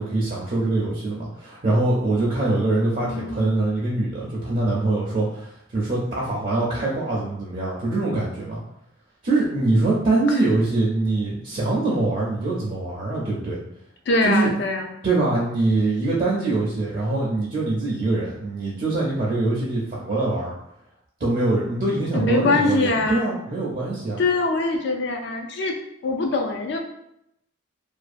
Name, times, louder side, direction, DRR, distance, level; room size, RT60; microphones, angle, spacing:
voice 1, 0.0-8.6 9.2-13.6 14.2-14.5 15.0-20.5 21.2-24.2, right 2 dB, 40° right, -5 dB, 0.4 m, -23 dB
voice 2, 3.0-3.5 14.1-14.9 22.1-23.3 24.2-25.7 26.0-26.8, left 2 dB, 55° left, 3 dB, 0.4 m, -23 dB
2.5 x 2.2 x 2.4 m, 0.80 s
head